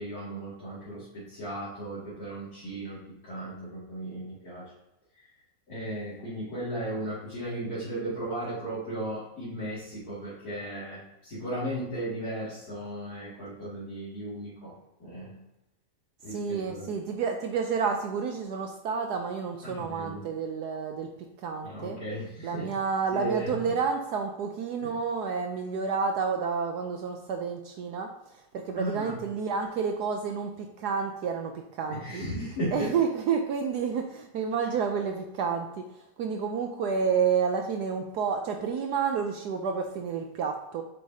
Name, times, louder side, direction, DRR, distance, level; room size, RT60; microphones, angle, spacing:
voice 1, 0.0-4.7 5.7-15.4 16.2-16.9 19.6-20.2 21.6-22.7 23.1-23.5 24.8-24.9 28.7-29.2 31.9-32.9, right 1 dB, 55° left, -11 dB, 2.7 m, -36 dB
voice 2, 16.3-21.1 21.4-22.0 22.4-32.2 32.7-35.7 36.0-40.8, right 6 dB, 70° right, 4 dB, 1.1 m, -30 dB
7.7 x 4.9 x 2.7 m, 0.90 s
omnidirectional pair, 2.0 m